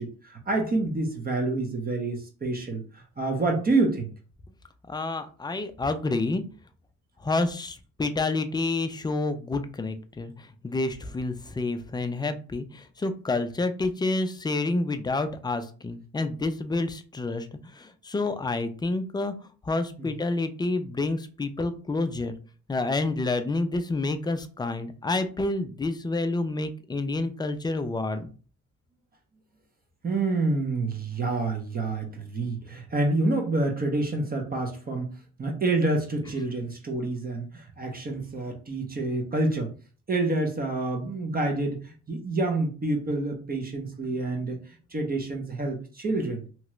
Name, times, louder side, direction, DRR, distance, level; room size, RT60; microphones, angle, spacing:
voice 1, 0.0-4.1 20.0-20.1 30.0-39.7 40.1-46.4, right 2 dB, 30° right, 2 dB, 0.7 m, -28 dB
voice 2, 4.9-6.4 7.2-22.4 22.7-28.3, left 2 dB, 15° left, 9 dB, 0.4 m, -29 dB
2.9 x 2.4 x 3.0 m, 0.38 s
cardioid pair, 90°, 30 cm